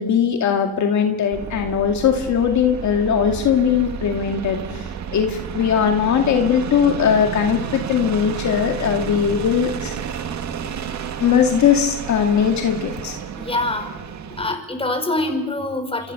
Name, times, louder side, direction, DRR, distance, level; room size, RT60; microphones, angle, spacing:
voice 1, 0.0-9.9 11.2-13.2, left 7 dB, 70° left, 4 dB, 2.2 m, -19 dB
sound 1, 1.3-14.6, right 7 dB, 65° right, 2.1 m, -31 dB
voice 2, 13.3-13.9 14.3-16.1, left 2 dB, 20° left, 6 dB, 5.5 m, -24 dB
27.5 x 25.0 x 6.8 m, 1.2 s
cardioid pair, 90°, 30 cm